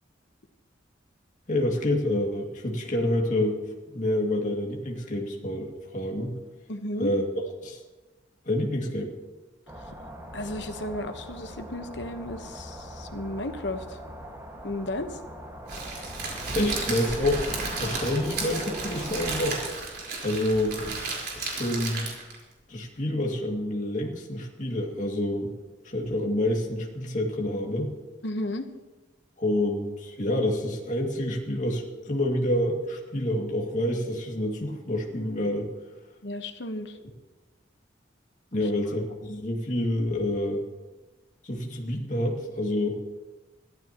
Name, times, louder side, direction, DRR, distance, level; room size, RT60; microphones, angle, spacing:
voice 1, 1.5-3.6 3.9-6.3 7.0-7.3 7.6-7.8 8.5-9.1 15.9-16.0 16.5-17.5 17.8-19.6 20.2-20.8 21.3-22.1 22.7-25.5 25.8-27.9 29.4-35.7 38.5-40.7 41.4-43.0, left 1 dB, 40° left, -1 dB, 2.3 m, -28 dB
voice 2, 6.7-7.1 10.3-14.0 14.6-15.2 28.2-28.7 36.2-37.0 38.5-38.7, left 1 dB, 65° left, 8 dB, 1.2 m, -34 dB
sound 1, 9.7-19.7, equal, 15° right, 1.8 m, -42 dB
Crackle, 15.7-22.4, right 3 dB, 55° right, 4.3 m, -33 dB
22.5 x 15.0 x 3.0 m, 1.1 s
head